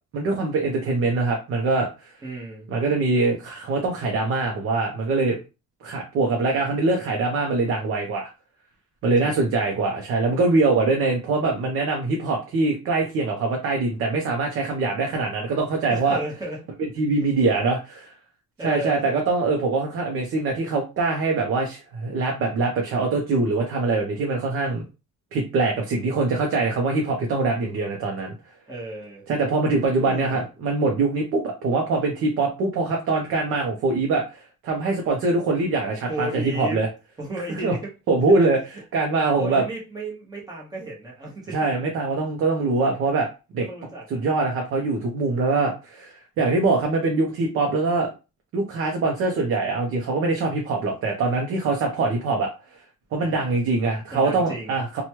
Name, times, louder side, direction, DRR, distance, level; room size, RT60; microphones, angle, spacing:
voice 1, 0.1-2.1 2.7-5.4 5.8-8.3 9.0-16.2 17.0-18.1 18.6-24.8 25.3-28.3 29.3-36.9 37.6-37.7 38.1-38.6 38.9-39.6 41.5-43.3 43.5-43.7 44.1-48.1 48.5-52.5 53.1-55.0, right 3 dB, 50° right, 1 dB, 0.6 m, -23 dB
voice 2, 2.2-2.7 9.1-9.4 15.9-16.6 18.6-19.1 28.7-29.3 30.0-30.4 36.1-36.8 37.2-37.9 38.2-38.5 39.4-41.6 43.6-44.2 53.2-53.6 54.1-54.8, right 1 dB, 15° right, -4 dB, 1.0 m, -34 dB
3.0 x 2.2 x 2.9 m, 0.30 s
cardioid pair, 170°, 29 cm